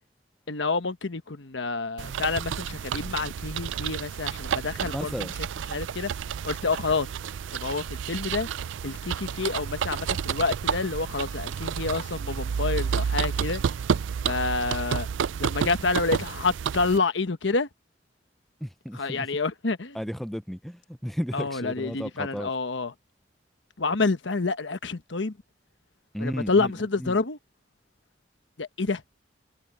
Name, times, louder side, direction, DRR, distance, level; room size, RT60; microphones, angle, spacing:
voice 1, 0.5-5.3 5.7-6.1 6.4-7.1 7.5-8.5 8.8-13.6 14.2-15.1 15.4-17.7 18.9-20.0 21.3-22.9 23.8-25.4 26.2-27.4 28.6-29.0, left 3 dB, 80° left, 1.1 m, -28 dB
sound 1, 2.0-17.0, right 7 dB, 85° right, 0.4 m, -30 dB
voice 2, 4.8-5.3 18.6-19.3 19.9-22.5 26.1-26.7 27.0-27.2, equal, ahead, 0.5 m, -34 dB
head